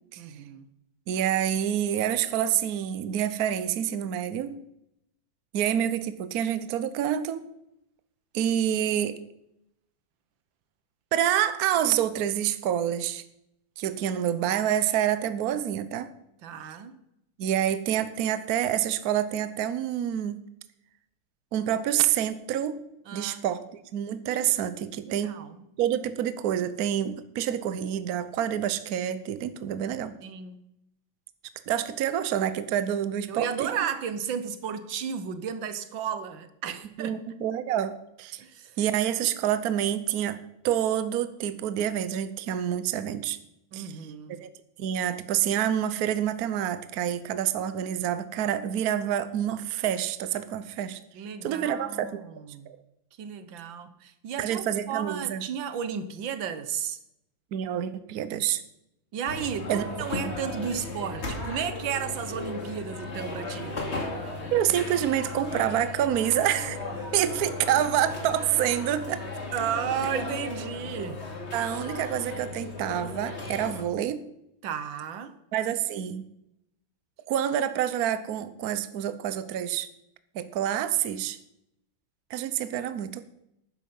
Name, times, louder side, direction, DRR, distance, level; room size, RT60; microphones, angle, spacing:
voice 1, 0.2-0.7 16.4-17.0 23.1-23.4 25.0-25.7 30.2-30.6 33.3-37.2 38.4-38.8 43.7-44.4 51.1-52.7 53.2-57.0 59.1-63.8 69.5-71.3 74.6-75.4, right 8 dB, 90° right, 1.8 m, -33 dB
voice 2, 1.1-4.6 5.5-7.4 8.3-9.2 11.1-13.2 13.8-16.1 17.4-20.4 21.5-22.8 23.1-23.7 23.9-25.4 25.8-30.1 31.7-33.7 37.0-38.4 38.8-43.4 43.7-43.9 44.3-44.5 44.8-51.0 51.4-52.2 52.7-52.8 54.4-55.4 57.5-58.6 59.7-59.9 64.5-66.8 67.1-69.2 71.5-74.2 75.5-76.2 77.3-79.9 80.3-81.4 82.3-83.2, right 10 dB, 60° right, 1.2 m, -27 dB
sound 1, 59.3-73.8, left 2 dB, 35° left, 2.5 m, -36 dB
12.0 x 10.0 x 5.5 m
omnidirectional pair, 2.0 m